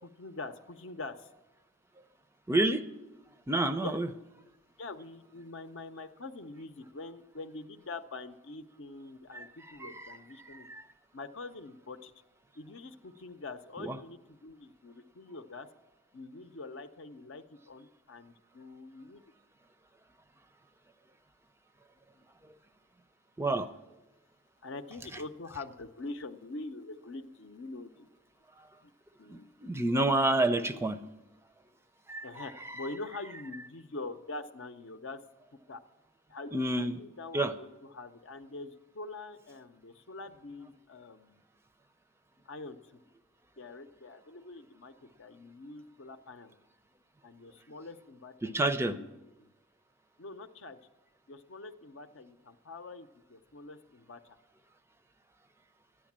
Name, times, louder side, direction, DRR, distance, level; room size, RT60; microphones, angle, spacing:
voice 1, 0.0-1.3 3.8-4.0 4.8-10.7 11.1-12.1 12.5-15.7 16.1-19.2 24.6-28.1 28.8-28.9 29.2-29.5 30.5-31.0 32.2-35.2 35.5-35.8 36.3-41.4 42.5-43.0 43.6-46.6 47.2-49.1 49.4-49.5 50.2-50.8 51.3-54.2, left 3 dB, 70° left, 9 dB, 0.7 m, -44 dB
voice 2, 2.5-2.8 3.5-4.1 9.3-9.5 9.8-10.1 10.5-10.8 13.8-14.0 23.4-23.7 29.3-31.0 32.1-32.8 36.5-37.0 37.3-37.5 48.4-49.0, right 2 dB, 15° right, 11 dB, 0.5 m, -29 dB
12.5 x 10.0 x 7.3 m, 1.1 s
head